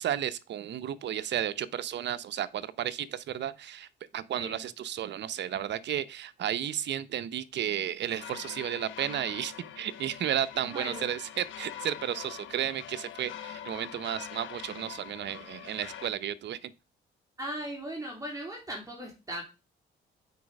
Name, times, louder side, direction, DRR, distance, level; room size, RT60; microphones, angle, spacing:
voice 1, 0.0-16.7, right 10 dB, 60° right, 0.7 m, -33 dB
sound 1, 8.1-16.1, left 10 dB, 75° left, 1.0 m, -44 dB
voice 2, 10.7-11.1 17.4-19.4, right 1 dB, 15° right, 3.0 m, -38 dB
8.3 x 4.8 x 5.3 m
cardioid pair, 90°, 20 cm